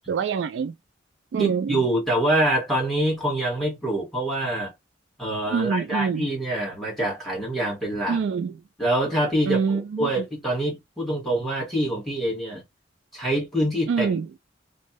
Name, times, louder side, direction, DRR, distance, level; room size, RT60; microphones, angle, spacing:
voice 1, 0.1-0.7 1.3-1.8 5.5-6.3 8.1-8.6 9.4-10.2 13.9-14.3, right 6 dB, 75° right, 0.3 m, -25 dB
voice 2, 1.4-4.7 5.2-8.2 8.8-9.6 10.0-12.6 13.1-14.1, right 1 dB, ahead, 1.5 m, -25 dB
2.6 x 2.1 x 2.9 m
head